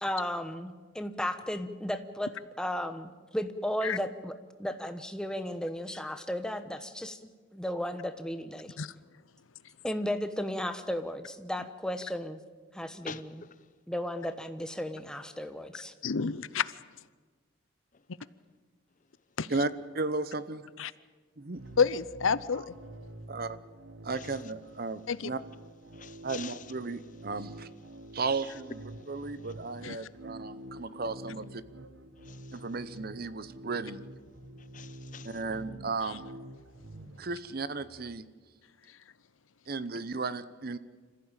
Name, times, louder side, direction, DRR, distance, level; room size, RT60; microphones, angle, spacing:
voice 1, 0.0-2.3 2.6-4.3 4.6-7.2 7.5-8.8 9.8-12.4 12.7-13.4 13.9-15.9, equal, 5° left, 1.1 m, -34 dB
voice 2, 16.0-17.0 19.4-19.5 20.8-20.9 21.8-22.7 25.1-25.3 29.8-30.0 36.0-36.2 38.8-39.0, left 6 dB, 90° left, 0.7 m, -30 dB
voice 3, 19.9-20.6 21.4-21.6 23.3-23.6 24.0-25.4 26.2-27.7 28.1-31.6 32.5-34.0 35.2-36.2 37.2-38.2 39.7-40.8, right 3 dB, 50° right, 0.8 m, -35 dB
sound 1, 21.6-38.2, right 1 dB, 75° right, 1.6 m, -48 dB
voice 4, 25.9-26.6 32.2-32.6 34.7-35.3, left 7 dB, 40° left, 0.8 m, -45 dB
26.0 x 15.0 x 9.0 m
head